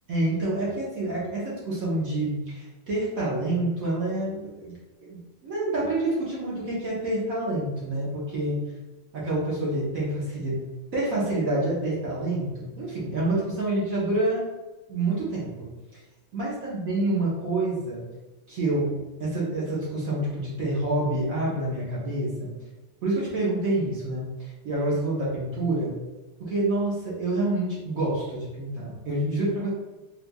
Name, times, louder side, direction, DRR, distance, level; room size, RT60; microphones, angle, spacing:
voice 1, 0.1-8.6 9.1-10.6 10.9-14.4 14.9-15.7 16.3-18.0 18.5-22.5 23.0-25.9 26.4-29.7, right 2 dB, 55° right, -7 dB, 1.0 m, -27 dB
4.3 x 2.4 x 2.3 m, 1.1 s
omnidirectional pair, 2.2 m